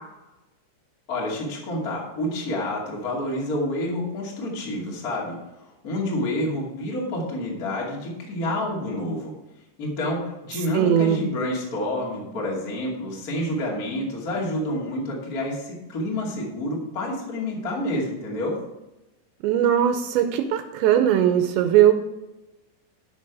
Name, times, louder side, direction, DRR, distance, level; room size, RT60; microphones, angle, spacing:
voice 1, 1.1-9.3 9.8-18.6, left 1 dB, 30° left, -3 dB, 1.8 m, -28 dB
voice 2, 10.7-11.2 19.4-22.0, right 10 dB, 80° right, 7 dB, 2.7 m, -19 dB
12.5 x 6.3 x 4.7 m, 0.98 s
omnidirectional pair, 5.6 m